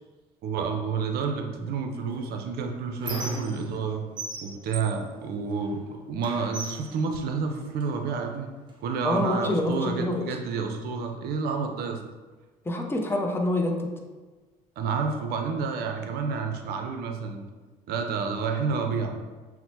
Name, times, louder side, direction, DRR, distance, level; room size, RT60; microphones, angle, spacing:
voice 1, 0.4-4.0 4.4-8.5 8.8-12.0 14.8-17.4 17.9-19.2, right 5 dB, 65° right, 4 dB, 0.6 m, -29 dB
Squeak, 2.1-3.9 4.2-5.8 6.2-7.9 8.7-8.8 9.2-10.2, right 2 dB, 25° right, 1.1 m, -39 dB
voice 2, 9.0-10.2 12.6-13.9, left 1 dB, 15° left, 2 dB, 0.6 m, -26 dB
5.8 x 2.1 x 2.8 m, 1.3 s
hypercardioid pair, 65°, 18 cm